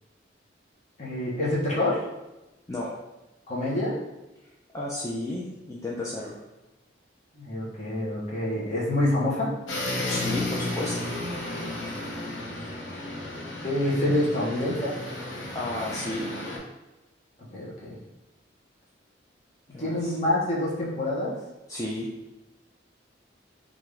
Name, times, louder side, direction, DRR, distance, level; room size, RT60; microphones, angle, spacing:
voice 1, 1.0-2.0 3.5-4.0 7.3-9.5 12.3-12.4 13.6-15.0 17.5-18.0 19.8-21.3, left 1 dB, 40° left, -6 dB, 1.0 m, -27 dB
voice 2, 4.7-6.4 10.1-11.1 15.5-16.3 19.7-20.1 21.7-22.1, left 1 dB, 15° left, -5 dB, 0.4 m, -32 dB
sound 1, 9.7-16.6, left 2 dB, 90° left, 0.8 m, -33 dB
3.5 x 2.5 x 3.3 m, 1.0 s
head